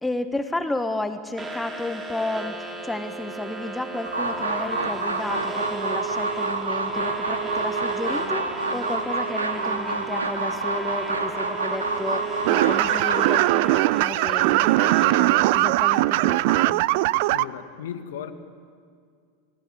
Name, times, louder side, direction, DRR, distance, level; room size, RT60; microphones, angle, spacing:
voice 1, 0.0-16.8, left 2 dB, 10° left, 8 dB, 1.4 m, -32 dB
sound 1, 1.4-15.1, right 4 dB, 20° right, 3.9 m, -35 dB
sound 2, 4.0-13.4, right 2 dB, 90° right, 2.5 m, -28 dB
sound 3, 12.5-17.4, right 18 dB, 60° right, 0.6 m, -20 dB
voice 2, 17.3-18.3, left 9 dB, 70° left, 9 dB, 2.0 m, -36 dB
30.0 x 19.5 x 9.7 m, 2.1 s
hypercardioid pair, 90°, 0 cm